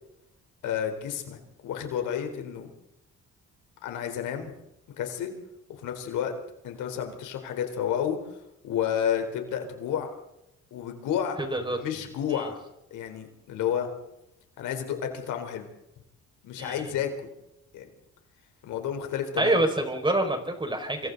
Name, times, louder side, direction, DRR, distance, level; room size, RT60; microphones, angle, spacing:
voice 1, 0.6-2.7 3.8-4.5 5.0-5.3 5.7-6.3 6.6-8.2 8.6-10.1 10.7-11.4 11.7-12.6 12.9-13.9 14.6-15.7 16.4-17.3 17.7-17.9 18.6-19.6, left 9 dB, 90° left, 5 dB, 4.1 m, -31 dB
voice 2, 11.4-11.8 12.3-12.5 16.6-16.9 19.4-21.1, right 1 dB, 15° right, 4 dB, 5.7 m, -27 dB
27.0 x 25.0 x 4.1 m, 0.87 s
cardioid pair, 90°, 30 cm